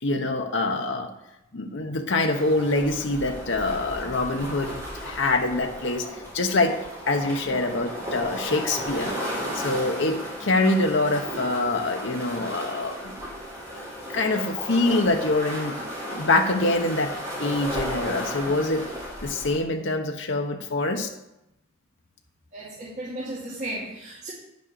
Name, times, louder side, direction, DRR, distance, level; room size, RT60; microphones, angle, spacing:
voice 1, 0.0-1.1 1.5-6.8 7.1-9.2 9.5-13.1 14.1-15.8 16.2-18.8 19.2-21.1, left 2 dB, 60° left, 3 dB, 0.9 m, -25 dB
sound 1, 2.3-19.6, equal, 15° right, 3.6 m, -35 dB
voice 2, 22.5-24.3, right 1 dB, 35° right, -8 dB, 2.3 m, -34 dB
9.6 x 6.4 x 6.7 m, 0.88 s
head